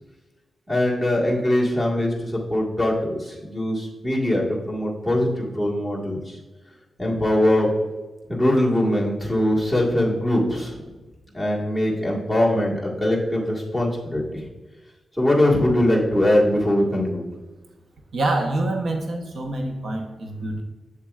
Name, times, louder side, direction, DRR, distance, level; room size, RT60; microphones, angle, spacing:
voice 1, 0.7-6.4 7.0-7.7 8.3-10.8 11.3-14.5 15.1-17.3, left 1 dB, 5° right, -4 dB, 1.6 m, -22 dB
voice 2, 18.1-20.6, right 2 dB, 65° right, 3 dB, 0.8 m, -26 dB
7.5 x 7.3 x 2.4 m, 1.2 s
wide cardioid pair, 130°, 0 cm